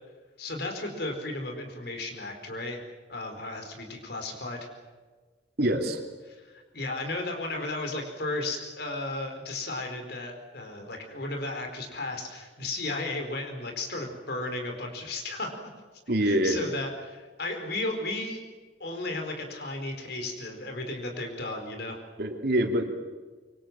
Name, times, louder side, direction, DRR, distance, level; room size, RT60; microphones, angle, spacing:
voice 1, 0.4-2.8 3.1-4.6 6.7-15.5 16.2-18.4 18.8-22.0, left 2 dB, 65° left, 3 dB, 4.7 m, -34 dB
voice 2, 5.6-6.0 16.1-16.6 22.2-23.0, right 1 dB, 60° right, 3 dB, 3.1 m, -25 dB
25.5 x 24.0 x 7.6 m, 1.4 s
head